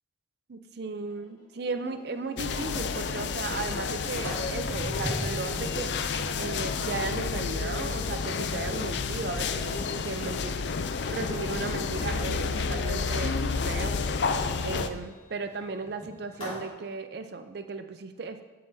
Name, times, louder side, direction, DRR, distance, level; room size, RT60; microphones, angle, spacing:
voice 1, 0.5-5.9 6.3-10.7 11.1-13.4 13.7-14.0 14.6-18.4, right 4 dB, 55° right, 8 dB, 0.5 m, -36 dB
sound 1, 1.1-14.8, left 2 dB, 80° left, 2.7 m, -54 dB
Sliding door, 1.8-1.9 2.3-2.4 2.7-3.0 3.4-11.4 11.8-12.3 14.3-16.7, equal, 30° left, 2.7 m, -42 dB
sound 2, 2.4-14.9, left 5 dB, 60° left, 0.4 m, -30 dB
13.0 x 5.7 x 2.7 m, 1.2 s
head